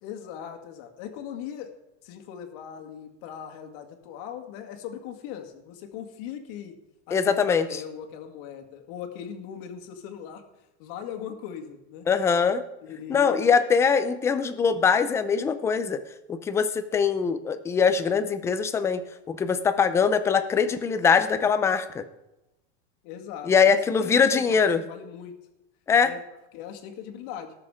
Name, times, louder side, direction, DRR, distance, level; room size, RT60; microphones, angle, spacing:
voice 1, 0.0-1.7 2.0-6.7 7.1-10.4 10.8-12.1 12.8-13.5 23.0-25.4 26.0-26.2 26.5-27.5, left 8 dB, 45° left, 5 dB, 2.0 m, -39 dB
voice 2, 7.1-7.8 12.1-12.6 13.1-16.0 16.3-19.0 19.3-22.0 23.5-24.8 25.9-26.1, left 6 dB, 10° left, 10 dB, 0.4 m, -22 dB
18.5 x 6.8 x 4.9 m, 0.94 s
supercardioid pair, 160°, 35 cm